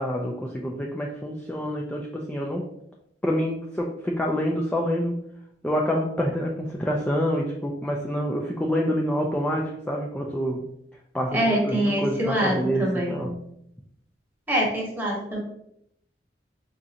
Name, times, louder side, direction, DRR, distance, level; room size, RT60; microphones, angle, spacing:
voice 1, 0.0-2.7 3.2-5.2 5.6-10.7 11.1-13.3, equal, 5° left, -1 dB, 0.4 m, -27 dB
voice 2, 11.3-13.2 14.5-15.4, equal, 10° right, -3 dB, 1.0 m, -25 dB
4.9 x 2.4 x 2.8 m, 0.75 s
head